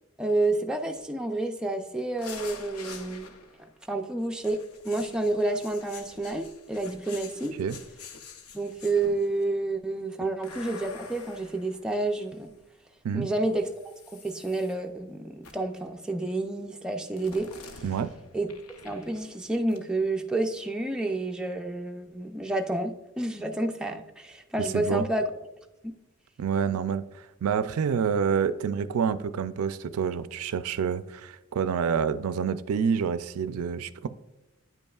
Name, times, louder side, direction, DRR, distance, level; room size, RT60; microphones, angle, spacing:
voice 1, 0.2-3.3 3.9-4.6 4.8-7.5 8.5-12.5 13.1-17.8 18.3-18.5 18.8-25.3 25.8-25.9, right 2 dB, 5° right, 3 dB, 0.4 m, -29 dB
sound 1, 2.2-3.7 4.4-9.4 10.4-12.6 13.6-14.7 15.4-15.8 17.2-19.4 19.7-19.8, left 5 dB, 85° left, 0.7 m, -47 dB
voice 2, 24.6-25.0 26.4-34.1, right 6 dB, 85° right, 13 dB, 0.4 m, -28 dB
9.2 x 5.3 x 2.3 m, 0.99 s
head